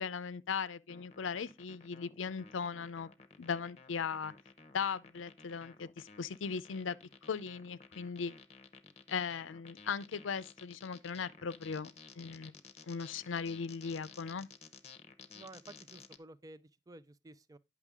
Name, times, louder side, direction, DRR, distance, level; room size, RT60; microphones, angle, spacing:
voice 1, 0.0-3.1 3.4-4.3 4.7-7.0 7.2-8.3 9.1-11.9 12.2-12.5 12.8-14.5, left 6 dB, 90° left, 0.5 m, -38 dB
sound 1, 0.9-16.2, left 5 dB, 35° left, 0.8 m, -55 dB
voice 2, 15.3-17.6, right 2 dB, 20° right, 0.4 m, -53 dB
9.8 x 6.0 x 3.5 m
head